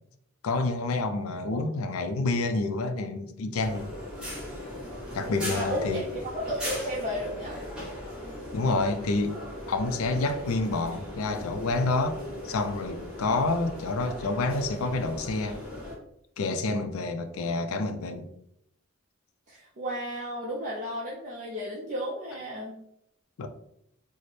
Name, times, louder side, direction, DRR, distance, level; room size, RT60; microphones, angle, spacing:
voice 1, 0.4-3.9 5.1-6.1 8.5-9.4 9.7-15.6 16.4-18.3 23.4-23.5, left 3 dB, 80° left, 0.4 m, -28 dB
sound 1, 3.6-16.0, left 1 dB, 5° right, 0.9 m, -38 dB
voice 2, 5.5-6.0 6.3-7.6 19.5-22.7, equal, 35° right, 0.6 m, -33 dB
4.1 x 2.1 x 3.1 m
head